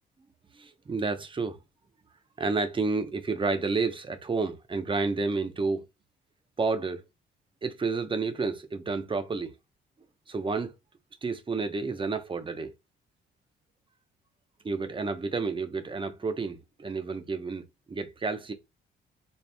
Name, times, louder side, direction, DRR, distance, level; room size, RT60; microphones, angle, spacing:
voice 1, 0.6-1.6 2.4-5.9 6.6-7.0 7.6-9.5 10.3-10.7 11.2-12.7 14.6-18.5, right 4 dB, 25° right, 0.8 m, -30 dB
4.4 x 2.4 x 3.4 m
cardioid pair, 90°, 20 cm